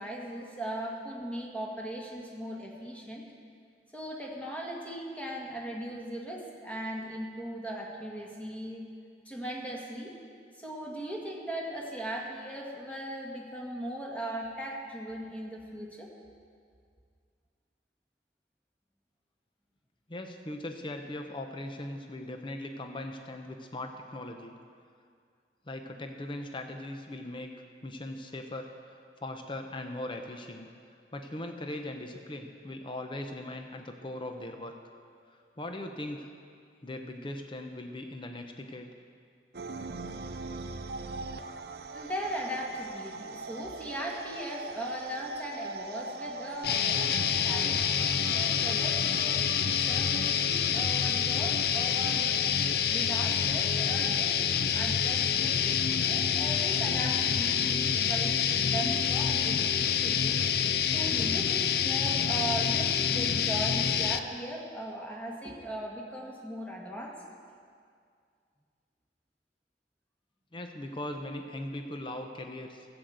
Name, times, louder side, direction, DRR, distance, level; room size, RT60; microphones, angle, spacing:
voice 1, 0.0-3.3 3.9-8.8 9.3-10.2 10.5-16.1 41.9-52.5 52.9-54.4 54.7-60.4 60.9-67.2, right 1 dB, 10° left, -2 dB, 1.8 m, -38 dB
voice 2, 20.1-24.6 25.7-27.5 27.8-30.7 31.1-34.7 35.3-36.3 36.8-38.9 70.5-72.9, left 1 dB, 30° left, 5 dB, 0.7 m, -39 dB
sound 1, 39.5-53.0, right 3 dB, 60° right, 0.6 m, -42 dB
sound 2, 46.6-64.2, left 8 dB, 60° left, 0.5 m, -27 dB
14.0 x 7.8 x 8.0 m, 2.2 s
head